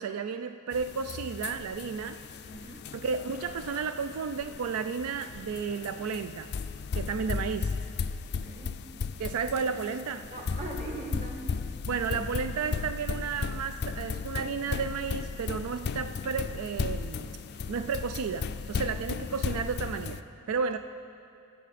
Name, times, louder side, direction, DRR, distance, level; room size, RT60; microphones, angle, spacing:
voice 1, 0.0-2.2 2.6-6.5 6.9-7.7 9.2-10.3 11.9-20.8, right 5 dB, 80° right, 9 dB, 0.4 m, -33 dB
sound 1, 0.7-20.2, left 5 dB, 50° left, 0.4 m, -36 dB
voice 2, 2.5-2.8 8.3-8.8 10.3-11.4, right 2 dB, 35° right, -1 dB, 1.9 m, -40 dB
21.5 x 7.3 x 4.1 m, 2.5 s
head